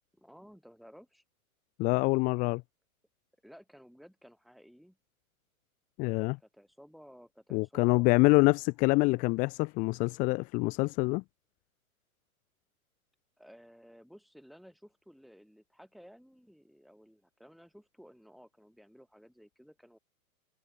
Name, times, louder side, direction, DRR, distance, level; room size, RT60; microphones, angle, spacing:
voice 1, 0.2-1.2 3.4-5.0 6.4-8.6 8.9-9.2 13.4-20.0, equal, ahead, 7.2 m, -56 dB
voice 2, 1.8-2.6 6.0-6.4 7.5-11.2, left 26 dB, 20° left, 0.5 m, -26 dB
hypercardioid pair, 115°, 43 cm